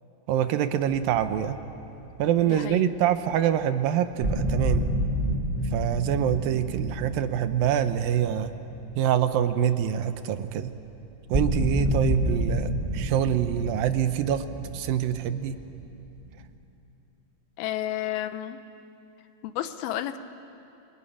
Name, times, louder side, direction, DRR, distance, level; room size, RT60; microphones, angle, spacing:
voice 1, 0.3-1.6 2.2-4.9 5.7-8.5 9.0-10.7 11.3-14.4 14.7-15.6, right 10 dB, 75° right, 10 dB, 2.4 m, -25 dB
sound 1, 1.4-2.2 2.6-2.7 3.6-3.7 4.2-9.5 9.9-10.0 10.5-10.6 11.3-16.5, equal, 20° right, 1.1 m, -30 dB
voice 2, 2.5-2.9 17.6-18.6 19.4-20.2, left 12 dB, 75° left, 10 dB, 2.7 m, -31 dB
27.5 x 20.0 x 10.0 m, 2.8 s
omnidirectional pair, 4.6 m